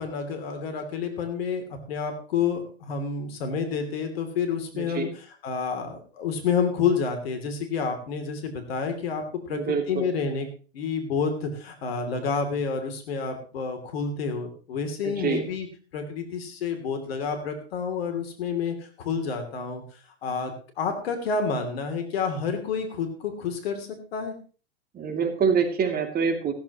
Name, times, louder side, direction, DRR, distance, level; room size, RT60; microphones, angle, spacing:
voice 1, 0.0-5.1 5.4-10.5 10.7-15.7 15.9-19.8 20.2-24.3, left 5 dB, 70° left, 6 dB, 3.1 m, -29 dB
voice 2, 4.7-5.1 9.5-10.1 15.0-15.5 24.9-26.5, right 6 dB, 30° right, 5 dB, 2.8 m, -26 dB
15.5 x 13.5 x 3.1 m, 0.38 s
hypercardioid pair, 100°, 32 cm